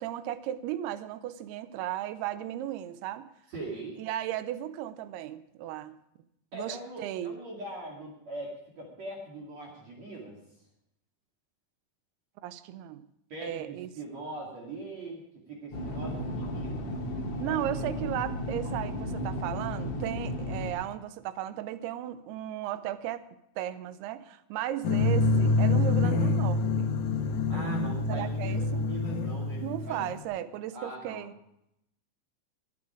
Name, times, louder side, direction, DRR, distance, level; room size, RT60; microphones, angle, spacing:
voice 1, 0.0-3.3 4.0-6.0 6.5-7.4 12.4-13.1 13.4-13.9 15.9-16.0 17.4-23.3 23.6-26.9 28.1-28.6 29.6-31.3, right 12 dB, 80° right, 12 dB, 2.4 m, -35 dB
voice 2, 3.5-4.0 6.5-10.4 13.3-15.2 15.5-16.9 17.5-17.6 27.5-30.0 30.7-31.2, right 2 dB, 45° right, -2 dB, 3.2 m, -41 dB
sound 1, 15.7-20.7, equal, 50° left, 2.4 m, -34 dB
sound 2, 24.8-30.2, left 3 dB, 70° left, 1.9 m, -26 dB
23.0 x 7.9 x 4.9 m, 0.79 s
omnidirectional pair, 5.2 m